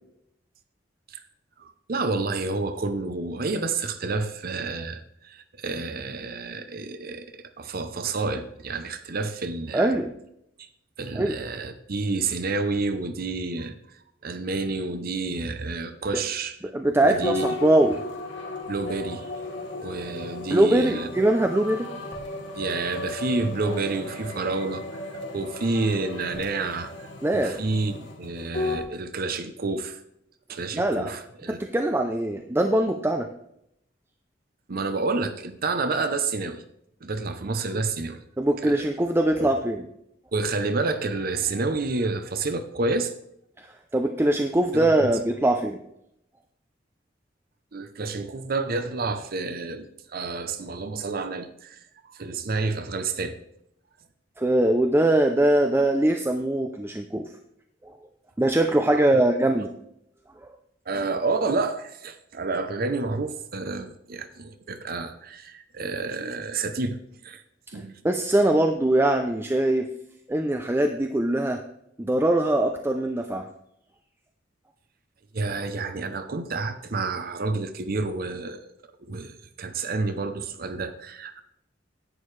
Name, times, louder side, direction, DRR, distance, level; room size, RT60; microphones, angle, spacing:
voice 1, 1.6-7.3 7.6-10.0 10.6-10.7 11.0-13.7 14.2-16.6 17.0-17.5 18.7-19.3 19.8-21.1 22.5-30.0 30.5-31.6 34.7-36.6 37.0-38.2 38.6-38.8 39.4-39.5 40.3-43.1 44.7-45.1 47.7-49.9 50.1-51.8 52.1-53.4 58.9-59.2 60.9-67.0 67.2-67.4 67.7-67.9 75.3-78.7 79.1-81.4, right 3 dB, 55° right, 10 dB, 0.7 m, -29 dB
voice 2, 9.7-10.1 11.2-11.4 16.7-18.0 20.5-21.9 27.2-27.6 30.7-31.1 31.5-33.3 38.4-39.8 43.6-45.8 54.4-57.3 57.8-57.9 58.4-59.7 68.0-69.9 70.3-71.6 72.0-73.5, right 1 dB, 15° right, 5 dB, 0.5 m, -22 dB
sound 1, 17.2-28.8, left 2 dB, 80° left, 2.3 m, -35 dB
11.0 x 9.3 x 3.2 m, 0.78 s
head